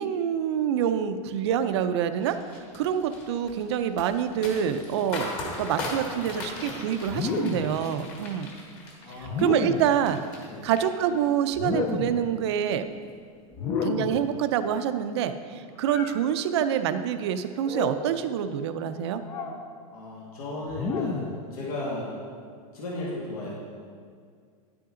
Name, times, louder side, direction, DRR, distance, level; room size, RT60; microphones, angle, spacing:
voice 1, 0.0-8.5 9.4-10.2 10.6-12.8 13.8-19.2, right 9 dB, 45° right, 10 dB, 0.5 m, -26 dB
sound 1, 2.2-10.5 10.8-11.4 11.8-12.1, left 2 dB, 35° left, 1.5 m, -38 dB
sound 2, 7.1-7.8 9.2-10.0 11.5-12.3 13.5-14.3 15.8-16.2 17.6-18.1 19.2-19.6 20.7-21.4, left 4 dB, 15° left, 0.4 m, -30 dB
voice 2, 9.0-9.4 9.8-10.0 10.4-10.7 19.9-22.2 22.7-23.6, left 1 dB, 85° left, -5 dB, 2.2 m, -35 dB
10.5 x 8.5 x 3.8 m, 2.1 s
supercardioid pair, 175°, 19 cm